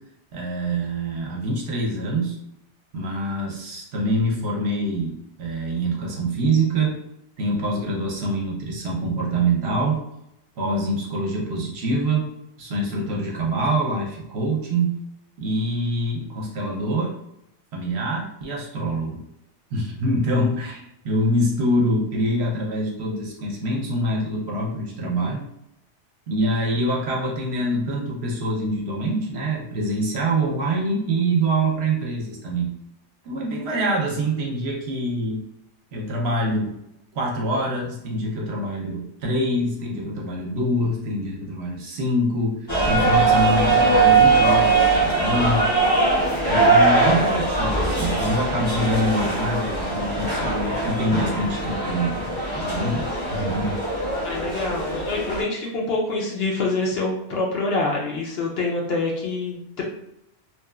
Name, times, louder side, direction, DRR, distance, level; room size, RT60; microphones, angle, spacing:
voice 1, 0.3-2.4 2.9-6.9 7.4-10.0 10.6-12.3 12.6-15.0 15.4-17.1 17.7-19.2 19.7-25.4 26.3-32.7 33.2-35.4 35.9-36.8 37.1-45.7 46.5-53.8, right 1 dB, 65° right, -2 dB, 0.9 m, -25 dB
sound 1, 42.7-55.4, right 3 dB, 25° left, 0.6 m, -21 dB
voice 2, 54.1-59.8, left 3 dB, 60° left, -2 dB, 0.8 m, -26 dB
2.9 x 2.3 x 2.3 m, 0.79 s
omnidirectional pair, 1.2 m